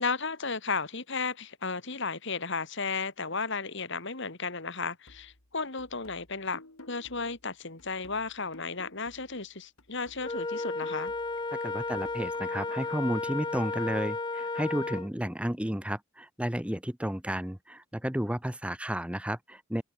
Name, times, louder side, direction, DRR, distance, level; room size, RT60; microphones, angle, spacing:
voice 1, 0.0-6.6 6.9-11.1, left 4 dB, 55° left, 2.8 m, -34 dB
sound 1, 5.1-9.5 9.8-13.1, left 2 dB, 85° left, 3.5 m, -55 dB
Wind instrument woodwind instrument, 10.2-15.1, left 3 dB, 20° left, 0.6 m, -33 dB
voice 2, 11.6-19.8, equal, 5° right, 1.1 m, -32 dB
head